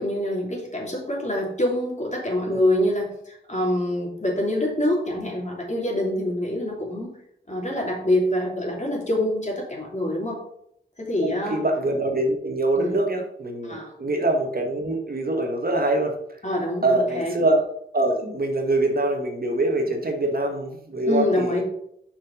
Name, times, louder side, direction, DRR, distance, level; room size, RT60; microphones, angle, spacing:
voice 1, 0.0-7.1 7.5-10.4 11.0-11.6 12.8-13.0 13.6-13.9 16.4-17.3 21.1-21.6, left 1 dB, 35° left, -2 dB, 2.9 m, -25 dB
voice 2, 11.2-16.1 16.8-17.6 17.9-21.6, right 2 dB, 50° right, 3 dB, 1.3 m, -24 dB
5.7 x 5.1 x 5.1 m, 0.72 s
cardioid pair, 45°, 20 cm